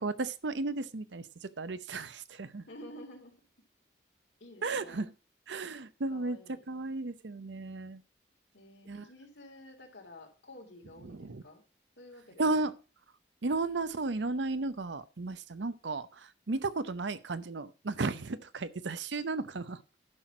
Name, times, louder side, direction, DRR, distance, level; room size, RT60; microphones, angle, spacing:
voice 1, 0.0-2.6 4.6-5.1 5.5-6.4 6.7-8.0 8.9-9.0 11.1-11.4 12.4-12.7 13.4-19.8, right 3 dB, 85° right, 0.7 m, -34 dB
voice 2, 2.7-3.3 4.4-5.0 6.1-6.6 8.5-11.6 12.0-12.7, left 1 dB, 85° left, 3.4 m, -51 dB
11.0 x 6.0 x 6.0 m
head